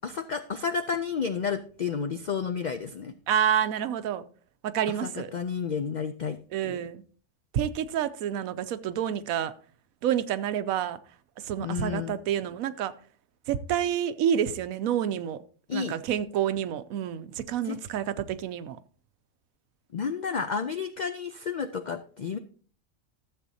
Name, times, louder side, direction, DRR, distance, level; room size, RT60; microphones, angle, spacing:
voice 1, 0.0-3.1 4.9-6.4 6.6-6.8 11.6-12.2 15.7-16.0 17.6-17.8 19.9-22.4, left 6 dB, 80° left, 0.4 m, -31 dB
voice 2, 3.3-4.2 4.6-5.3 6.5-7.0 7.5-9.5 10.0-11.0 11.4-12.9 13.5-15.4 15.7-18.8, right 9 dB, 85° right, 1.0 m, -28 dB
13.0 x 7.5 x 2.7 m
omnidirectional pair, 1.4 m